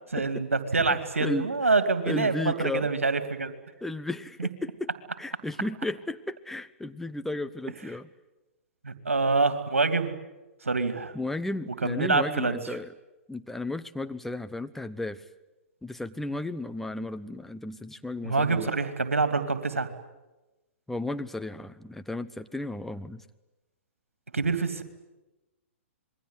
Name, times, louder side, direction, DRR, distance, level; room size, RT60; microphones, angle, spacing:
voice 1, 0.1-3.5 4.4-4.5 8.8-10.1 10.6-11.1 11.8-12.6 18.2-19.9 24.3-24.8, right 3 dB, 80° right, 10 dB, 2.6 m, -26 dB
voice 2, 0.7-1.5 2.1-2.9 3.8-4.9 5.2-8.1 11.1-12.9 13.3-15.2 15.8-18.7 20.9-23.2, left 2 dB, 5° left, 9 dB, 0.9 m, -34 dB
27.0 x 22.0 x 9.6 m, 1.1 s
figure-of-eight pair, 115°, 7 cm